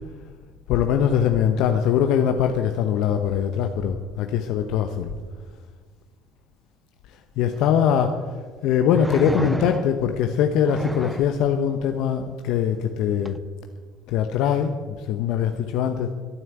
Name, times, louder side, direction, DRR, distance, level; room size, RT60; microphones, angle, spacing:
voice 1, 0.7-5.1 7.4-8.2 8.6-13.3 14.1-16.1, left 8 dB, 70° left, 6 dB, 0.9 m, -22 dB
sound 1, 7.5-7.6 8.9-10.1 10.6-11.3 13.2-13.4, right 1 dB, 5° right, 0.5 m, -29 dB
13.0 x 9.1 x 8.1 m, 1.5 s
supercardioid pair, 75°, 0 cm